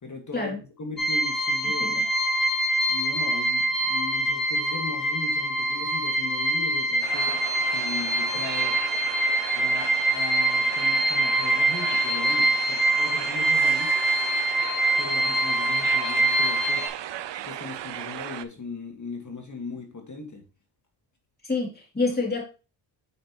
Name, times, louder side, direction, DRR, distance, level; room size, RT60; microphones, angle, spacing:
voice 1, 0.0-2.2 2.9-8.8 9.5-13.9 15.0-16.8 17.4-20.4, left 3 dB, 35° left, 1.9 m, -38 dB
sound 1, 1.0-16.9, right 1 dB, ahead, 1.5 m, -24 dB
sound 2, 7.0-18.4, right 12 dB, 60° right, 0.6 m, -36 dB
voice 2, 21.4-22.4, left 3 dB, 20° left, 3.0 m, -27 dB
6.6 x 5.5 x 3.1 m
cardioid pair, 65°, 50 cm